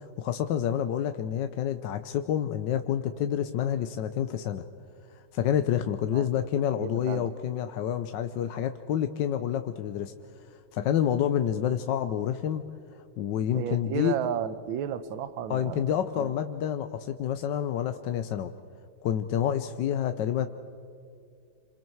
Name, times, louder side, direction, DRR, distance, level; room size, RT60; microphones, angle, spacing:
voice 1, 0.2-4.6 5.3-10.1 10.7-12.6 13.2-14.2 15.5-18.5 19.0-20.5, left 10 dB, 70° left, 9 dB, 1.3 m, -28 dB
voice 2, 6.8-7.3 13.5-16.3, right 9 dB, 75° right, 13 dB, 1.7 m, -33 dB
27.5 x 26.0 x 4.6 m, 2.5 s
omnidirectional pair, 2.2 m